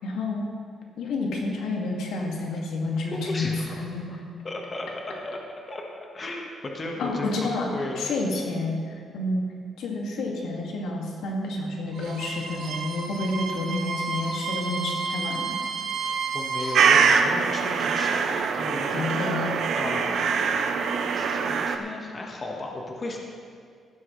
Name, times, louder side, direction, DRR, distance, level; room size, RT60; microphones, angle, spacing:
voice 1, 0.0-0.5 1.0-4.1 7.0-7.7 8.0-9.4 9.8-15.6 18.9-19.5, left 2 dB, 85° left, -1 dB, 2.1 m, -29 dB
voice 2, 3.1-3.8 4.4-4.9 5.2-5.4 5.7-5.8 6.1-8.0 16.0-19.1 19.7-20.8 21.1-23.2, left 2 dB, 30° left, 0 dB, 1.4 m, -35 dB
Bowed string instrument, 11.9-16.9, right 4 dB, 85° right, 1.8 m, -31 dB
sound 1, 16.8-21.8, right 6 dB, 65° right, 0.8 m, -23 dB
15.5 x 12.0 x 3.2 m, 2.2 s
cardioid pair, 135°, 0 cm